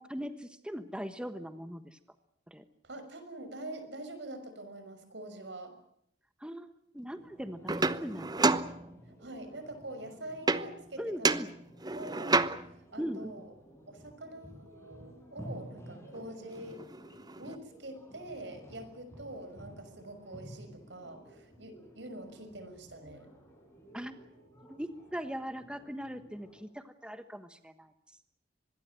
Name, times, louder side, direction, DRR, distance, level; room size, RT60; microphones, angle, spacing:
voice 1, 0.0-2.0 2.5-2.6 6.4-8.5 11.0-11.5 13.0-13.3 23.9-24.1 24.7-27.9, equal, 5° right, 10 dB, 1.3 m, -40 dB
voice 2, 2.8-5.8 7.6-7.8 9.2-11.4 11.9-12.4 12.9-13.5 13.9-16.8 17.4-23.3, right 1 dB, 75° right, 9 dB, 6.2 m, -45 dB
sound 1, 7.2-26.6, equal, 15° left, 6.9 m, -53 dB
sound 2, 7.7-9.3 10.5-10.9 11.2-12.9 16.1-16.2 16.5-17.6, right 3 dB, 20° right, 1.0 m, -30 dB
25.0 x 21.5 x 7.6 m, 0.69 s
head